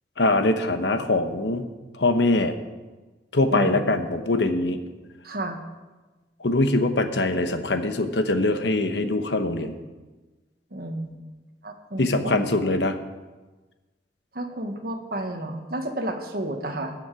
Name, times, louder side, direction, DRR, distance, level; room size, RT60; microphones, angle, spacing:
voice 1, 0.2-1.7 1.9-2.5 3.3-4.8 6.4-9.7 12.0-13.0, left 2 dB, 75° left, 8 dB, 1.1 m, -23 dB
voice 2, 3.5-3.8 5.2-5.6 10.7-11.2 11.6-12.4 14.3-16.9, right 1 dB, 55° right, 4 dB, 1.5 m, -31 dB
20.5 x 7.2 x 4.9 m, 1.2 s
head